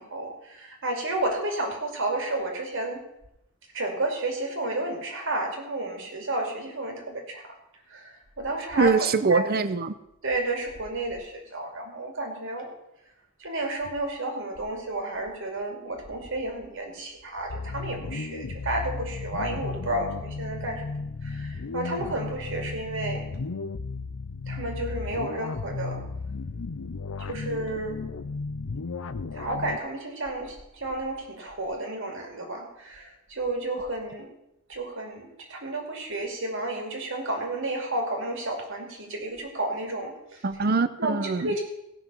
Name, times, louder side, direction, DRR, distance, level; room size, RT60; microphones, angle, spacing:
voice 1, 0.0-3.0 3.7-7.4 7.9-8.9 9.3-9.5 10.2-12.7 13.4-20.8 21.2-23.2 24.5-26.0 27.3-28.0 29.3-34.3 34.7-40.1 41.0-41.6, right 2 dB, 65° right, 2 dB, 2.5 m, -31 dB
voice 2, 8.8-9.9 40.4-41.5, right 4 dB, 50° right, 13 dB, 0.6 m, -23 dB
sound 1, 17.5-29.8, left 4 dB, 90° left, 0.6 m, -34 dB
17.0 x 6.0 x 5.5 m, 0.85 s
head